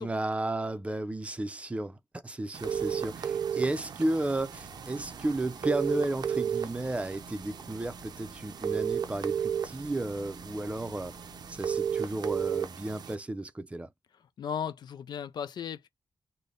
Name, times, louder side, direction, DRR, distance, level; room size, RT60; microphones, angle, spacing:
voice 1, 0.0-2.0 2.2-11.2 11.5-13.9, right 2 dB, 15° right, 0.5 m, -33 dB
sound 1, 2.5-13.1, right 8 dB, 70° right, 0.5 m, -34 dB
sound 2, 4.4-12.5, left 4 dB, 60° left, 1.3 m, -56 dB
voice 2, 14.4-15.9, left 8 dB, 75° left, 0.3 m, -36 dB
3.3 x 2.1 x 3.7 m
wide cardioid pair, 115°, 7 cm